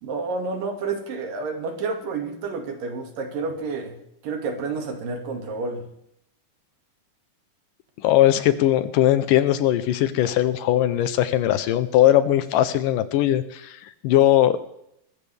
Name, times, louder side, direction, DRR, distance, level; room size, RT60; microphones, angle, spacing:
voice 1, 0.0-4.0 4.2-5.8, right 4 dB, 75° right, 4 dB, 3.7 m, -29 dB
voice 2, 8.0-13.8 14.0-14.6, left 12 dB, 75° left, 12 dB, 2.3 m, -19 dB
22.5 x 14.0 x 3.5 m, 0.77 s
omnidirectional pair, 4.0 m